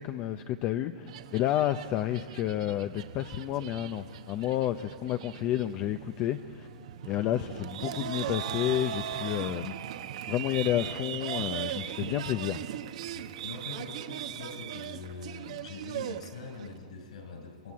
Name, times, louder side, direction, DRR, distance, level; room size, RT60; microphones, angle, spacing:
voice 1, 0.0-6.7 7.0-9.7 10.3-12.6, left 12 dB, 30° left, 8 dB, 0.6 m, -30 dB
sound 1, 1.1-16.7, right 11 dB, 55° right, 1.0 m, -39 dB
voice 2, 13.1-17.7, left 4 dB, 70° left, 5 dB, 5.5 m, -43 dB
25.0 x 23.0 x 8.5 m, 2.6 s
hypercardioid pair, 160°, 4 cm